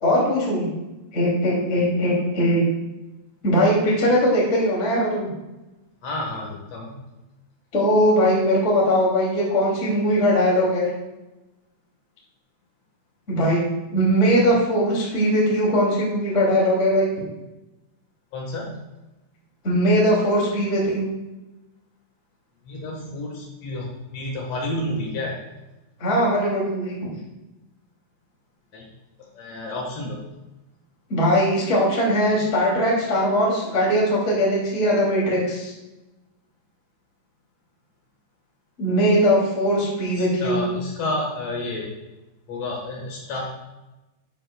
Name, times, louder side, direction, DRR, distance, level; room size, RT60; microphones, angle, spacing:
voice 1, 0.0-0.7 1.1-2.7 3.4-5.3 7.7-10.9 13.3-13.6 13.9-17.1 19.6-21.1 26.0-27.0 31.1-35.7 38.8-40.8, equal, 25° left, -5 dB, 1.7 m, -20 dB
voice 2, 6.0-7.0 18.3-18.8 22.7-25.4 28.7-28.9 29.3-30.2 40.2-41.9 42.5-43.4, left 1 dB, 75° left, -2 dB, 1.5 m, -30 dB
12.0 x 9.8 x 2.2 m, 1.0 s
omnidirectional pair, 5.1 m